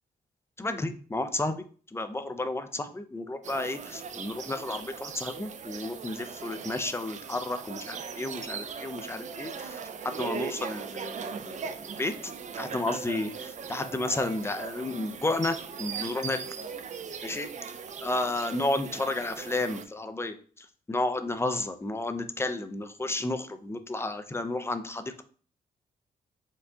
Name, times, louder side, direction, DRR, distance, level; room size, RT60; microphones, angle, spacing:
voice 1, 0.6-1.6 1.9-16.5 17.2-17.5 18.0-25.2, left 2 dB, 15° left, 9 dB, 0.5 m, -32 dB
sound 1, 3.4-19.8, right 6 dB, 45° right, 0.5 m, -39 dB
4.5 x 2.3 x 3.8 m, 0.42 s
cardioid pair, 80°, 16 cm